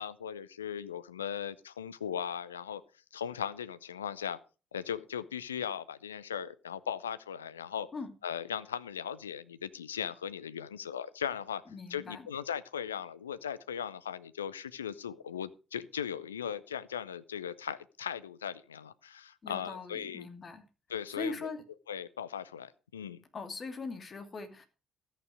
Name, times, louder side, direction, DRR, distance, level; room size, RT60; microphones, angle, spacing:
voice 1, 0.0-2.8 3.1-4.4 4.7-7.9 8.2-11.6 11.9-20.3 20.9-21.5 21.9-23.2, left 8 dB, 80° left, 16 dB, 0.5 m, -38 dB
voice 2, 11.7-12.3 19.4-20.6 21.1-21.6 23.3-24.7, left 4 dB, 40° left, 7 dB, 2.8 m, -40 dB
13.5 x 9.1 x 4.8 m, 0.33 s
figure-of-eight pair, 45°, 0 cm